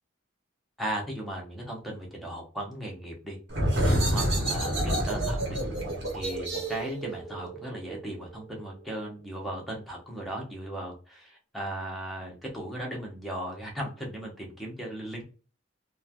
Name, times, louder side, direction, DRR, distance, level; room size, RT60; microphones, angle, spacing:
voice 1, 0.8-3.4 3.9-5.6 6.1-15.2, right 1 dB, ahead, -2 dB, 0.8 m, -37 dB
sound 1, 3.5-8.9, right 1 dB, 60° right, 1.1 m, -29 dB
3.1 x 2.2 x 2.4 m, 0.37 s
head